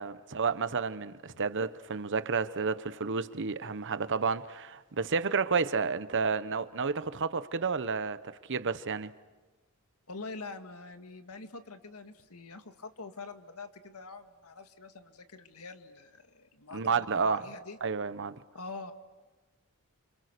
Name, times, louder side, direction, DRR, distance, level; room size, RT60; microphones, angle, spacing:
voice 1, 0.0-8.2 8.5-9.1 16.7-17.4 17.8-18.3, right 5 dB, 55° right, 1.0 m, -31 dB
voice 2, 10.1-17.8 18.5-18.9, left 3 dB, 75° left, 1.9 m, -45 dB
29.0 x 26.5 x 6.8 m
head